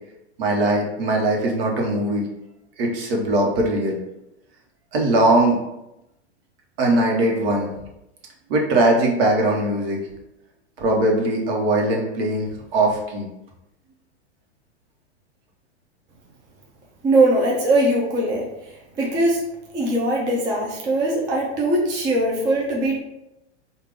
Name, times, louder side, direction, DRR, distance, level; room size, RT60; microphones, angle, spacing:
voice 1, 0.4-2.2 2.8-4.0 4.9-5.6 6.8-7.7 8.5-10.0 10.8-13.3, right 1 dB, 55° right, 0 dB, 1.1 m, -20 dB
voice 2, 17.0-19.4 19.7-23.0, right 1 dB, 15° right, -3 dB, 0.3 m, -21 dB
3.6 x 2.4 x 3.5 m, 0.89 s
hypercardioid pair, 130°, 34 cm